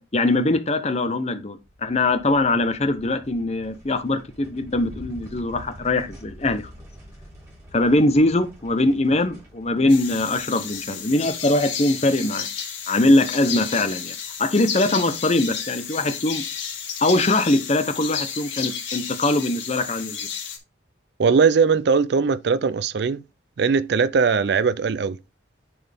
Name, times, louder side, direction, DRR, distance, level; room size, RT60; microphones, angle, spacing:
voice 1, 0.0-6.7 7.7-12.5 12.9-16.4 17.0-20.2, left 2 dB, 35° left, 0.8 m, -22 dB
sound 1, 1.6-12.2, equal, 15° right, 2.6 m, -46 dB
sound 2, 9.9-20.6, left 7 dB, 70° left, 2.0 m, -32 dB
voice 2, 21.2-23.2 23.6-25.2, right 5 dB, 60° right, 0.4 m, -20 dB
10.0 x 4.4 x 3.4 m
head